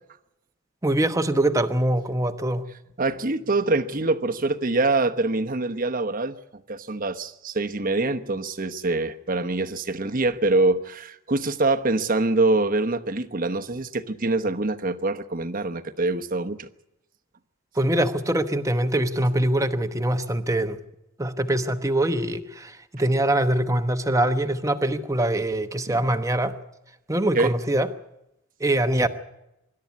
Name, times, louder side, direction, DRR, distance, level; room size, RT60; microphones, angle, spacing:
voice 1, 0.8-2.7 17.8-20.8 21.2-26.6 27.1-27.9 28.6-29.1, right 1 dB, 15° right, 1.0 m, -23 dB
voice 2, 3.0-6.4 6.7-16.7 25.9-26.0 27.3-27.5, right 2 dB, 40° right, 1.1 m, -24 dB
25.0 x 12.5 x 9.5 m
head